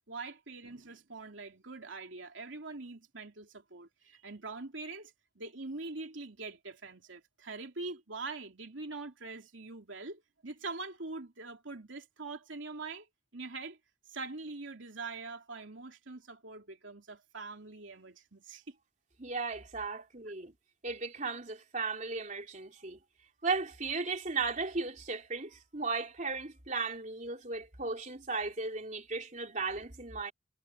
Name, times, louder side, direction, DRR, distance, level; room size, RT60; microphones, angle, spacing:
voice 1, 0.1-13.1 13.3-13.8 14.1-18.8, right 3 dB, 85° right, 3.0 m, -43 dB
voice 2, 19.2-20.5 20.8-23.0 23.4-30.3, right 4 dB, 40° right, 3.3 m, -36 dB
head